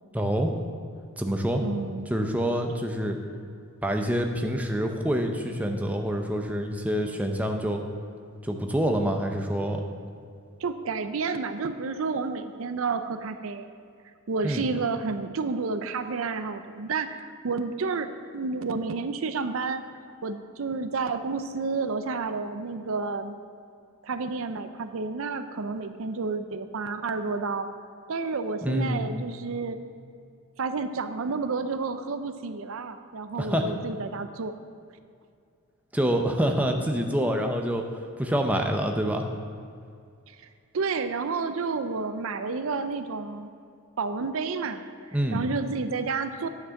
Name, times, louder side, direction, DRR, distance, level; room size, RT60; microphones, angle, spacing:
voice 1, 0.1-0.5 1.2-1.6 2.1-3.2 3.8-7.8 8.4-9.8 14.4-14.7 28.6-29.2 33.4-33.7 35.9-37.9 38.2-39.3 45.1-45.4, equal, 5° right, 3 dB, 0.6 m, -26 dB
voice 2, 1.6-2.1 10.6-13.7 14.3-19.8 20.2-23.4 24.0-27.7 28.1-29.8 30.6-34.5 40.3-40.5 40.7-43.5 44.0-44.8 45.3-46.5, right 4 dB, 65° right, 10 dB, 0.5 m, -30 dB
9.7 x 6.0 x 7.1 m, 2.3 s
head